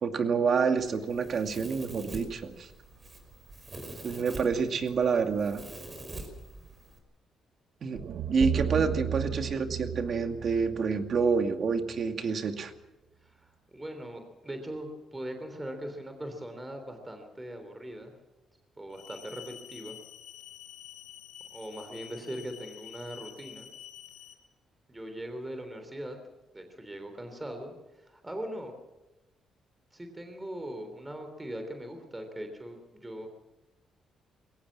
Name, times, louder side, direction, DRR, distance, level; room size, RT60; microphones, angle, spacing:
voice 1, 0.0-2.7 4.0-5.7 7.8-8.0 8.3-12.7, right 5 dB, 55° right, 6 dB, 2.3 m, -28 dB
Domestic sounds home sounds, 0.8-7.0, right 2 dB, 30° right, 5.3 m, -45 dB
sound 1, 8.0-12.1, right 8 dB, 70° right, 0.9 m, -34 dB
voice 2, 13.2-18.1 18.8-20.0 21.5-23.7 24.9-26.2 26.5-28.7 29.9-33.3, right 1 dB, 15° right, 5 dB, 3.4 m, -40 dB
sound 2, 18.9-24.3, left 10 dB, 90° left, 3.6 m, -48 dB
22.5 x 17.5 x 7.5 m, 1.0 s
cardioid pair, 90°, 0 cm